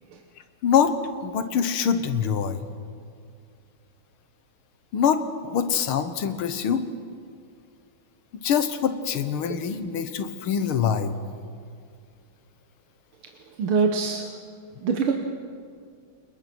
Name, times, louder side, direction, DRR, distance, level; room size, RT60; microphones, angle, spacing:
voice 1, 0.6-0.9 1.2-2.7 4.9-6.8 8.4-11.2, left 7 dB, 85° left, 10 dB, 2.0 m, -24 dB
voice 2, 13.6-14.3 14.8-15.1, right 5 dB, 85° right, 4 dB, 2.1 m, -23 dB
30.0 x 20.5 x 6.1 m, 2.2 s
omnidirectional pair, 2.3 m